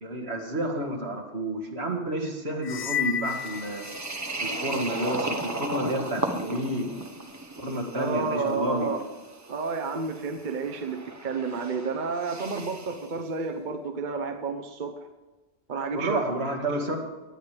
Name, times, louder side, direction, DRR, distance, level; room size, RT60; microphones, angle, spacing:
voice 1, 0.0-3.8 4.4-6.9 7.6-8.9 15.9-17.0, right 1 dB, 80° right, 0 dB, 2.2 m, -30 dB
sound 1, 2.6-4.5, left 9 dB, 55° left, 0.4 m, -32 dB
sound 2, 3.3-13.1, right 2 dB, 20° right, 0.7 m, -36 dB
voice 2, 7.9-9.0 9.5-15.0 15.7-16.5, right 4 dB, 50° right, 5 dB, 0.9 m, -31 dB
18.5 x 10.5 x 3.3 m, 1.2 s
omnidirectional pair, 1.1 m